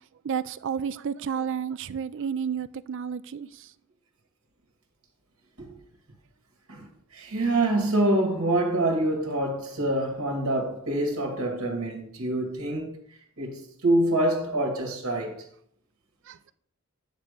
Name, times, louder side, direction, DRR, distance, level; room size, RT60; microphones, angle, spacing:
voice 1, 0.2-3.5 16.3-16.5, right 7 dB, 60° right, 0.4 m, -31 dB
voice 2, 7.1-13.0 13.4-15.4, right 1 dB, 80° right, 2.0 m, -26 dB
9.2 x 3.6 x 6.6 m
head